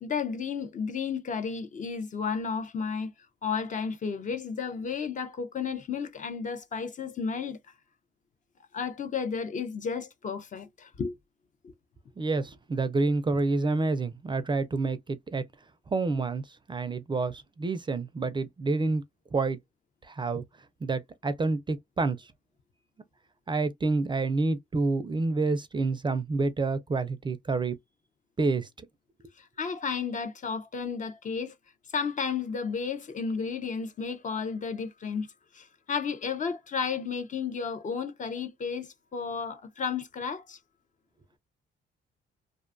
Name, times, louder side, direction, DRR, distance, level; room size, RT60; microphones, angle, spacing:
voice 1, 0.0-3.1 3.4-7.6 8.7-11.2 11.6-11.7 29.4-31.5 31.9-35.3 35.5-40.6, left 5 dB, 40° left, 0.5 m, -33 dB
voice 2, 12.2-15.4 15.9-19.0 19.3-19.6 20.0-20.4 20.8-22.3 23.5-27.8 28.4-28.7, right 3 dB, 25° right, 0.4 m, -28 dB
2.5 x 2.2 x 2.4 m
cardioid pair, 90°, 20 cm